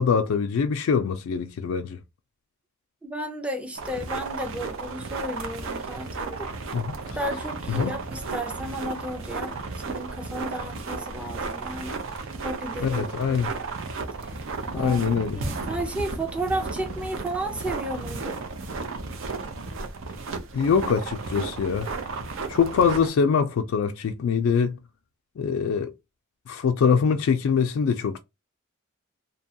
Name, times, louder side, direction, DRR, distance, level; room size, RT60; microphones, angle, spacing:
voice 1, 0.0-2.0 6.7-7.0 7.7-8.0 12.8-13.5 14.7-15.4 20.5-21.9 22.5-24.8 25.4-25.9 26.5-28.2, left 6 dB, 75° left, 0.3 m, -23 dB
voice 2, 3.0-6.5 7.1-12.1 12.4-13.4 14.2-14.3 14.7-15.1 15.3-18.4, right 1 dB, 5° right, 0.5 m, -33 dB
sound 1, 3.7-23.1, right 3 dB, 65° right, 0.6 m, -34 dB
2.8 x 2.2 x 2.7 m
head